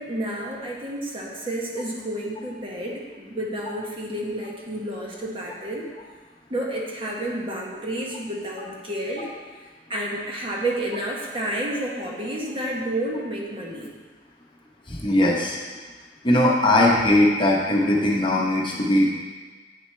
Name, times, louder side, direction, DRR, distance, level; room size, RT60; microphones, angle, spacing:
voice 1, 0.0-5.9 6.5-9.3 9.9-13.9, right 1 dB, 30° right, -3 dB, 1.2 m, -30 dB
voice 2, 14.9-15.6 16.2-19.2, left 1 dB, 30° left, -3 dB, 1.0 m, -19 dB
8.5 x 6.5 x 3.3 m, 1.4 s
head